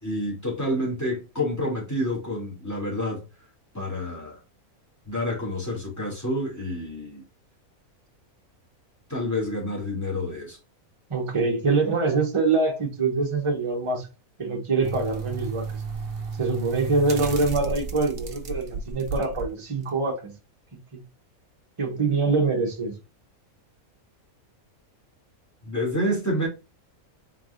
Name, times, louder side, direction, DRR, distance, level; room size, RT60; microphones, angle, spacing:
voice 1, 0.0-3.2 3.7-4.4 5.0-7.2 9.1-10.6 25.6-26.5, left 1 dB, 10° left, 2.3 m, -28 dB
voice 2, 11.1-14.1 14.4-15.8 16.4-20.3 20.9-21.0 21.8-23.0, right 3 dB, 25° right, 1.1 m, -24 dB
sound 1, 14.8-19.5 19.9-20.0, right 4 dB, 50° right, 1.0 m, -33 dB
4.6 x 4.0 x 2.5 m
omnidirectional pair, 1.5 m